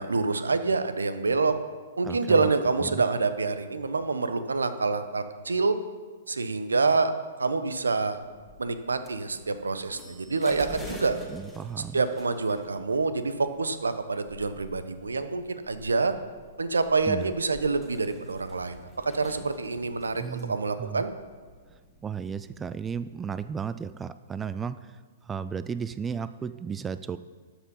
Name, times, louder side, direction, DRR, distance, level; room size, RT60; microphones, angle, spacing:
voice 1, 0.0-1.5 2.0-5.8 6.3-7.1 7.4-8.2 8.6-11.2 11.9-16.1 16.6-21.1, right 4 dB, 80° right, 11 dB, 0.9 m, -27 dB
voice 2, 2.0-2.5 2.8-3.0 11.3-12.0 17.1-17.3 20.2-21.0 22.0-27.2, right 6 dB, 15° right, 14 dB, 0.3 m, -34 dB
sound 1, 8.1-23.5, equal, ahead, 1.8 m, -48 dB
12.5 x 7.3 x 5.4 m, 1.5 s
figure-of-eight pair, 115°, 0 cm